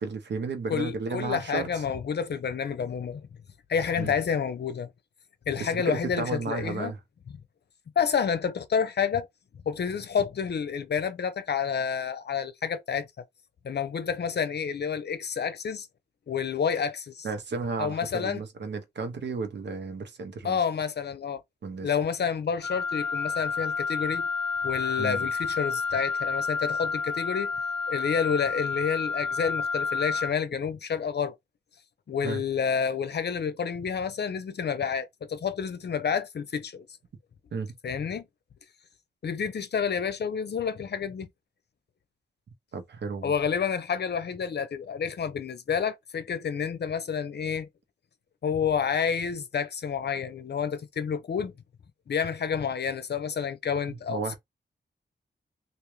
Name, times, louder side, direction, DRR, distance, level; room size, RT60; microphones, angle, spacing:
voice 1, 0.0-1.8 4.0-4.2 5.6-7.0 17.2-20.6 21.6-21.9 25.0-25.2 32.2-32.4 37.5-37.7 42.7-43.3 53.9-54.3, right 4 dB, 75° right, 1.0 m, -33 dB
voice 2, 0.7-3.2 3.7-4.9 5.5-6.9 8.0-9.3 9.7-13.1 13.6-15.9 16.3-17.3 17.8-18.4 20.4-21.4 21.8-24.3 24.6-27.5 27.9-31.3 32.1-36.9 37.8-38.2 39.2-41.3 43.2-47.7 48.4-51.5 52.1-54.3, left 7 dB, 65° left, 0.7 m, -29 dB
Wind instrument woodwind instrument, 22.6-30.4, left 5 dB, 5° left, 0.7 m, -30 dB
3.5 x 2.6 x 3.2 m
wide cardioid pair, 90°, 18 cm